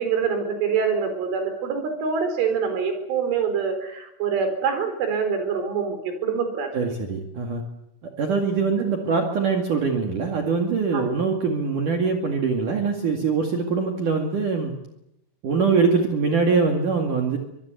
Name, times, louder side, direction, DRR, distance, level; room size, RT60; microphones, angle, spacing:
voice 1, 0.0-6.9 10.9-11.1, right 6 dB, 75° right, 7 dB, 6.7 m, -25 dB
voice 2, 6.7-7.6 8.0-14.7 15.4-17.4, right 5 dB, 50° right, 2 dB, 3.1 m, -23 dB
25.0 x 21.0 x 8.1 m, 0.84 s
omnidirectional pair, 5.6 m